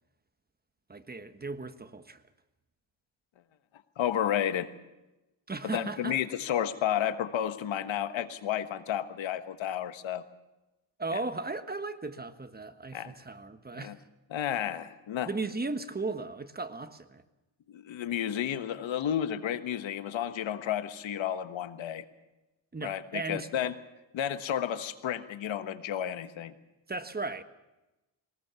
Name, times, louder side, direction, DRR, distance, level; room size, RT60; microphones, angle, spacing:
voice 1, 0.9-2.2 5.5-6.2 11.0-14.0 15.2-17.2 22.7-23.5 26.9-27.4, right 3 dB, 20° right, 1.2 m, -36 dB
voice 2, 4.0-4.7 5.7-10.2 11.1-11.2 12.9-13.1 13.8-13.9 14.3-15.3 17.7-22.0 22.8-23.7 24.1-26.5, left 10 dB, 75° left, 1.5 m, -32 dB
22.0 x 20.0 x 7.0 m
cardioid pair, 100°, 46 cm